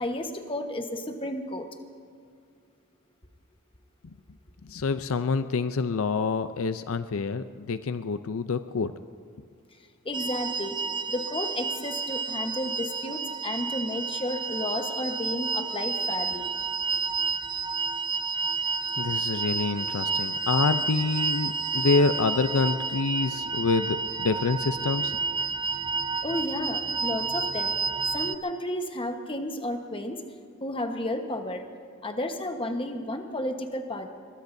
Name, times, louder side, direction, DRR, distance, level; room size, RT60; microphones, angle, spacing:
voice 1, 0.0-1.7 10.0-10.7 11.1-16.5 26.2-27.7 28.1-30.2 30.6-31.6 32.0-34.1, left 1 dB, 25° left, 5 dB, 1.2 m, -32 dB
voice 2, 4.7-8.9 19.0-25.2, left 4 dB, 70° left, 11 dB, 0.5 m, -27 dB
sound 1, 10.1-28.4, right 4 dB, 20° right, 0.5 m, -30 dB
24.0 x 21.5 x 2.7 m, 2.3 s
head